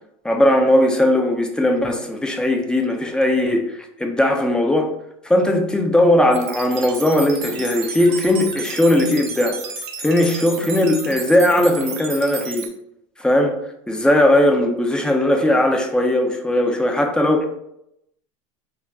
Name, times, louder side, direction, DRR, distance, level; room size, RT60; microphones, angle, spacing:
voice 1, 0.2-4.9 5.2-9.6 10.0-12.7 13.2-13.6 13.9-17.5, left 1 dB, 5° left, 4 dB, 0.3 m, -18 dB
sound 1, 6.3-12.7, right 5 dB, 75° right, 0.6 m, -32 dB
2.3 x 2.2 x 3.4 m, 0.81 s
supercardioid pair, 110°, 15 cm